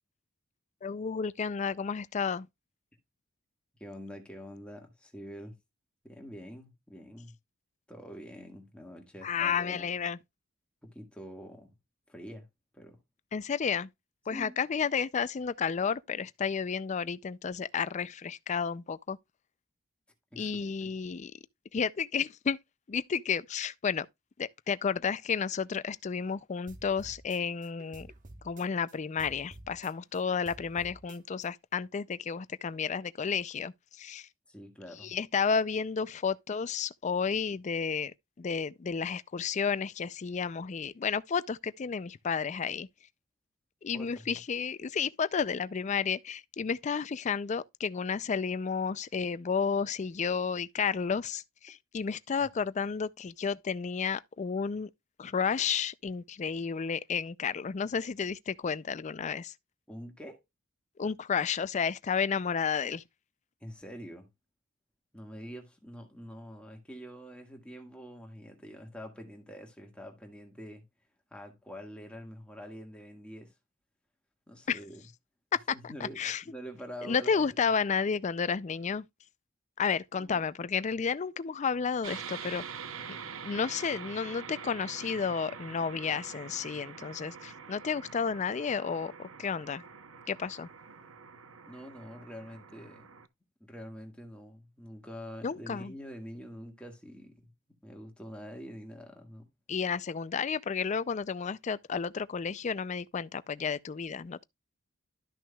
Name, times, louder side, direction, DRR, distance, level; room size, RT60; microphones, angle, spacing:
voice 1, 0.8-2.5 9.2-10.2 13.3-13.9 14.3-19.2 20.4-21.3 21.7-22.6 22.9-24.1 24.4-28.1 28.4-34.3 35.0-38.1 38.4-42.9 43.8-54.9 55.2-59.5 61.0-63.0 74.7-74.8 75.5-76.4 77.0-79.0 79.8-82.6 83.1-83.2 83.4-89.8 90.3-90.7 95.4-95.9 99.7-104.4, left 6 dB, 35° left, 0.4 m, -32 dB
voice 2, 3.8-5.6 6.0-7.3 7.9-9.9 10.8-11.7 12.1-12.5 12.7-13.0 14.3-14.5 20.3-20.9 34.5-35.1 43.9-44.4 52.4-52.5 59.9-60.4 63.6-64.3 65.1-70.9 71.3-73.5 74.5-75.1 75.7-77.6 80.2-80.5 91.7-93.1 93.6-97.5 97.8-99.5, equal, 5° left, 1.7 m, -46 dB
sound 1, 26.7-28.9 29.2-31.5, right 1 dB, 40° right, 1.2 m, -51 dB
sound 2, 82.0-93.3, right 6 dB, 75° right, 0.8 m, -45 dB
12.5 x 6.1 x 2.3 m
head